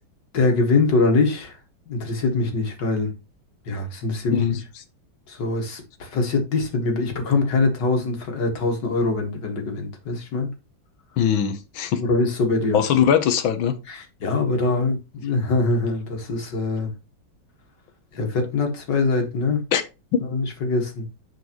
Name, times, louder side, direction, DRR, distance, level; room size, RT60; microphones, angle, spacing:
voice 1, 0.3-1.6 1.9-3.1 3.7-4.6 5.3-10.5 12.0-12.8 13.9-16.9 18.1-19.6 20.3-21.1, left 3 dB, 60° left, 2.4 m, -23 dB
voice 2, 11.2-12.0 12.7-13.8 19.7-19.8, left 8 dB, 75° left, 1.7 m, -21 dB
9.3 x 4.6 x 3.0 m
omnidirectional pair, 2.2 m